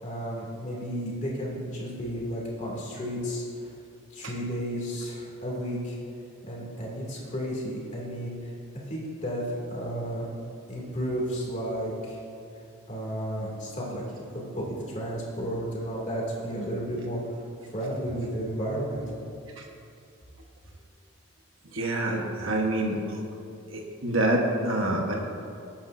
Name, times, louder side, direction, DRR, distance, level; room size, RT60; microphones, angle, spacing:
voice 1, 0.0-3.4 4.1-6.0 6.4-8.5 8.9-10.3 10.7-12.2 12.9-14.0 14.3-19.0, equal, 35° left, -4 dB, 2.5 m, -32 dB
voice 2, 21.7-23.2 23.7-25.2, right 1 dB, 65° right, 0 dB, 1.3 m, -27 dB
19.0 x 8.8 x 2.7 m, 2.5 s
head